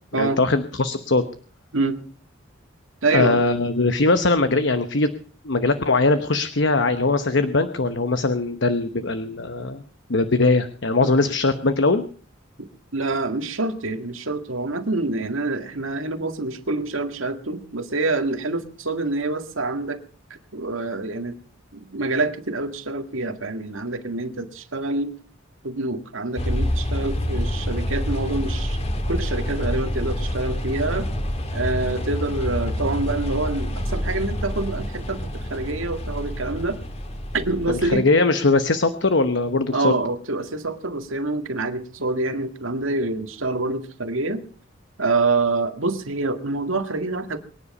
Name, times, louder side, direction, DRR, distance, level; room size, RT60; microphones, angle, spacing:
voice 1, 0.1-1.2 3.1-5.1 5.4-9.8 10.1-12.1 37.7-40.0, left 3 dB, 60° left, 10 dB, 1.0 m, -21 dB
voice 2, 3.0-3.4 11.0-11.1 12.6-20.0 20.5-21.4 21.7-25.1 25.6-31.1 31.5-36.8 37.3-38.1 39.7-44.5 45.0-47.4, right 2 dB, 80° right, 7 dB, 2.0 m, -26 dB
sound 1, 26.4-38.0, equal, 30° left, 1.9 m, -27 dB
23.5 x 10.0 x 5.5 m, 0.43 s
head